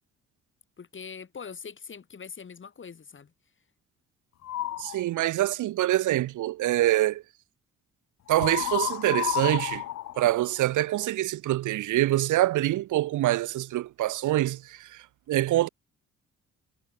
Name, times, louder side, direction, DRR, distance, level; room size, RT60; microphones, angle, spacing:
voice 1, 0.8-3.3, left 6 dB, 40° left, 5.0 m, -42 dB
sound 1, 4.4-5.0 8.3-11.0, left 13 dB, 60° left, 0.7 m, -31 dB
voice 2, 4.8-7.2 8.3-9.8 10.2-15.7, right 15 dB, 80° right, 1.2 m, -25 dB
cardioid pair, 90°, 30 cm